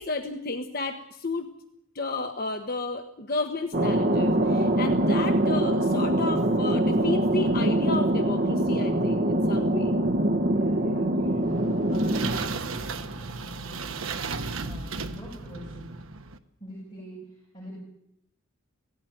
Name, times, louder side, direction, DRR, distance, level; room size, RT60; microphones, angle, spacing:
voice 1, 0.0-1.5 1.9-9.9 10.8-10.9, left 3 dB, 45° left, 5 dB, 1.2 m, -32 dB
Thunder, 3.7-13.0, right 1 dB, 50° right, 1.4 m, -24 dB
voice 2, 10.4-15.9 16.6-17.8, equal, 20° left, -6 dB, 7.7 m, -45 dB
sound 1, 11.4-16.4, right 4 dB, 80° right, 1.1 m, -35 dB
18.5 x 15.5 x 9.1 m, 0.75 s
head